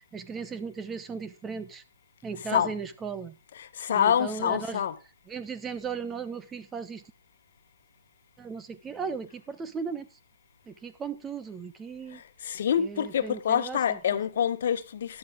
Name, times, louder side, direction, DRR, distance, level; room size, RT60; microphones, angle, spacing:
voice 1, 0.1-1.8 2.2-3.4 3.9-4.9 5.3-7.0 8.4-10.1 10.7-12.2 12.8-14.0, right 5 dB, 15° right, 0.9 m, -36 dB
voice 2, 3.5-4.9 12.4-15.2, left 9 dB, 50° left, 1.4 m, -26 dB
13.5 x 10.5 x 3.7 m
figure-of-eight pair, 130°, 0 cm